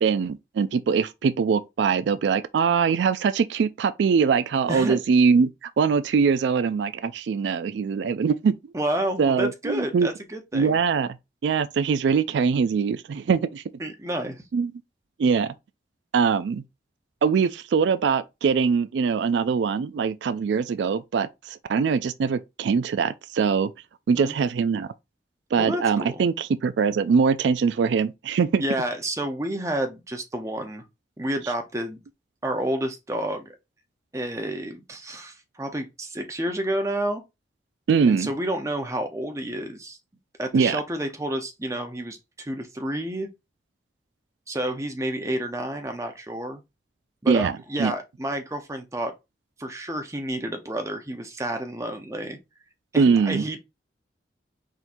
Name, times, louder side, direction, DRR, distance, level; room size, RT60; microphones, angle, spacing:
voice 1, 0.0-8.5 9.2-10.1 10.5-11.2 11.4-13.6 14.5-14.7 15.2-15.5 16.1-16.6 17.2-23.7 24.1-24.9 25.5-28.6 37.9-38.3 40.5-40.8 47.3-47.5 47.8-47.9 53.0-53.4, right 5 dB, 80° right, 0.3 m, -22 dB
voice 2, 4.7-5.0 8.7-10.8 13.8-14.4 24.1-24.3 25.6-26.2 28.6-30.8 31.2-32.0 32.4-33.5 34.1-37.2 38.1-40.0 40.4-43.3 44.5-46.6 47.2-49.1 49.6-52.4 52.9-53.6, right 1 dB, 15° right, 0.7 m, -30 dB
4.3 x 3.6 x 2.6 m
head